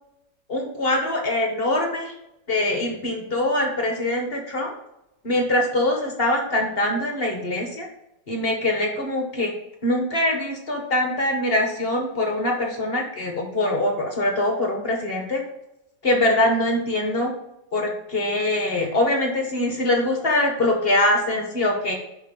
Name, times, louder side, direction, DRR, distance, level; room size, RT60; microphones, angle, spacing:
voice 1, 0.5-2.1 2.5-4.7 5.2-7.9 8.3-9.5 9.8-15.4 16.0-17.3 17.7-21.9, left 1 dB, 35° left, 2 dB, 1.2 m, -23 dB
5.6 x 5.5 x 5.2 m, 0.86 s
omnidirectional pair, 2.0 m